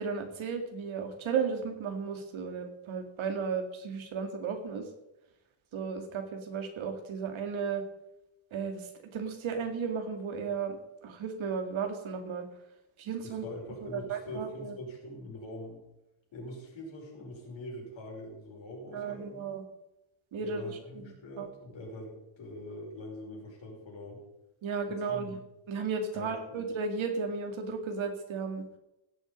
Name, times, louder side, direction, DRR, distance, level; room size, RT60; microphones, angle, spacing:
voice 1, 0.0-4.9 5.7-7.8 8.5-12.5 13.0-13.4 13.8-14.8 18.9-19.6 20.3-21.5 24.6-25.4 25.7-28.7, right 5 dB, 75° right, 6 dB, 2.2 m, -34 dB
voice 2, 13.2-15.8 16.3-19.5 20.4-24.2 25.1-25.4 26.1-26.4, left 1 dB, 65° left, -1 dB, 5.5 m, -43 dB
16.5 x 7.5 x 5.3 m, 0.94 s
cardioid pair, 115°, 48 cm